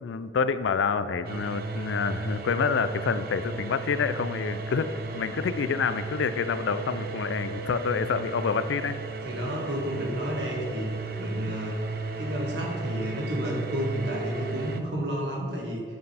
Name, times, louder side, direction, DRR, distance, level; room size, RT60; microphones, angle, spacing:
voice 1, 0.0-9.0, left 5 dB, 80° left, 13 dB, 0.4 m, -28 dB
sound 1, 1.2-14.8, right 3 dB, 50° right, 0.5 m, -35 dB
voice 2, 9.2-10.9 11.2-11.8 12.2-15.8, equal, 70° right, -2 dB, 1.9 m, -31 dB
8.8 x 6.8 x 3.4 m, 2.2 s
head